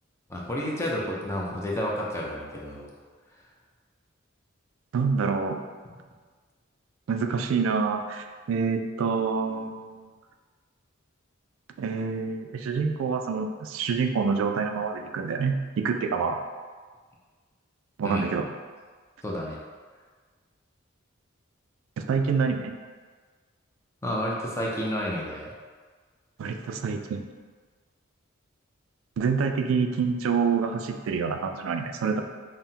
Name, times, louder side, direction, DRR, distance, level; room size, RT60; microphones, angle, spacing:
voice 1, 0.3-2.9 18.0-18.3 19.2-19.6 24.0-25.5, equal, 15° left, -3 dB, 0.5 m, -30 dB
voice 2, 4.9-5.6 7.1-10.0 11.8-16.4 18.0-18.5 22.0-22.8 26.4-27.2 29.2-32.2, right 5 dB, 75° right, 5 dB, 0.3 m, -27 dB
5.5 x 2.1 x 2.8 m, 1.5 s
head